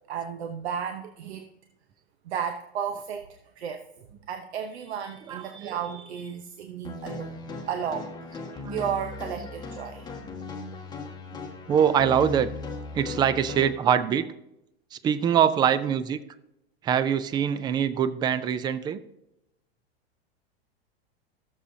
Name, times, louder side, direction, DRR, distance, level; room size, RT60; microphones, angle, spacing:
voice 1, 0.1-1.5 2.2-8.4 8.7-10.1, right 8 dB, 80° right, 6 dB, 0.9 m, -34 dB
voice 2, 5.3-5.8 8.6-8.8 9.3-9.5 11.7-12.5 12.9-14.3 14.9-16.2 16.8-19.0, right 8 dB, 15° right, 14 dB, 0.3 m, -24 dB
sound 1, 6.8-13.7, left 3 dB, 10° left, 1.4 m, -38 dB
15.5 x 7.1 x 2.7 m, 0.87 s
hypercardioid pair, 125°, 32 cm